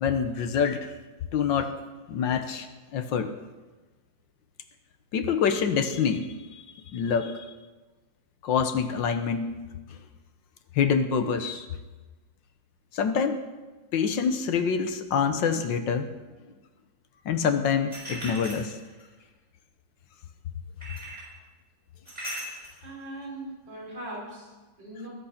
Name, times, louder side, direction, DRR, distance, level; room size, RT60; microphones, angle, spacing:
voice 1, 0.0-0.9 1.3-1.8 2.1-3.3 5.1-6.3 6.5-6.6 6.9-7.4 8.4-9.5 10.7-11.6 12.9-13.4 13.9-16.1 17.2-18.8, left 6 dB, 70° left, 9 dB, 1.6 m, -26 dB
sound 1, 17.9-19.1 20.8-21.3 22.1-22.8, right 1 dB, 20° right, 6.5 m, -38 dB
voice 2, 22.8-25.1, right 1 dB, 65° right, -5 dB, 5.7 m, -40 dB
19.5 x 8.3 x 5.8 m, 1.2 s
omnidirectional pair, 2.1 m